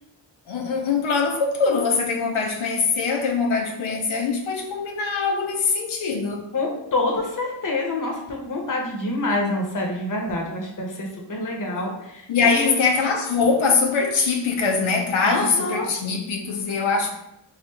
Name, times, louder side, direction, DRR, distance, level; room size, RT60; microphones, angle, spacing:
voice 1, 0.5-6.5 12.3-17.1, left 4 dB, 85° left, 2 dB, 0.6 m, -22 dB
voice 2, 6.5-12.8 15.2-15.9, left 2 dB, 45° left, 0 dB, 0.8 m, -27 dB
3.1 x 2.6 x 3.2 m, 0.84 s
wide cardioid pair, 85°, 46 cm